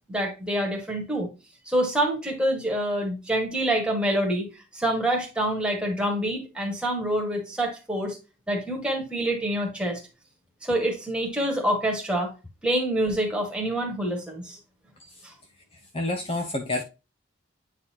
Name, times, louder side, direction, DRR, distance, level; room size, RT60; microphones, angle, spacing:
voice 1, 0.1-1.3 1.7-4.5 4.7-8.2 8.5-10.0 10.6-12.3 12.6-14.6 15.2-15.3, right 1 dB, 5° right, 1.8 m, -26 dB
voice 2, 15.7-16.8, left 2 dB, 25° left, 0.7 m, -29 dB
9.2 x 4.1 x 2.9 m
head